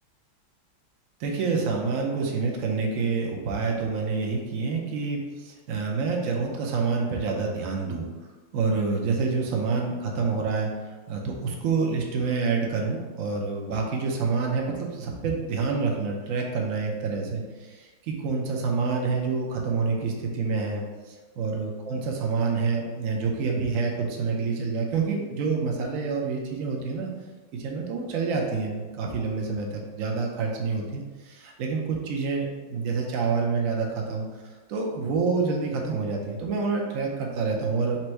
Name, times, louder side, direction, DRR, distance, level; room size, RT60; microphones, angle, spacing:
voice 1, 1.2-8.0 8.5-10.7 11.1-27.1 27.5-34.3 34.7-38.0, right 4 dB, 65° right, 0 dB, 0.8 m, -27 dB
4.4 x 2.6 x 4.4 m, 1.3 s
omnidirectional pair, 2.2 m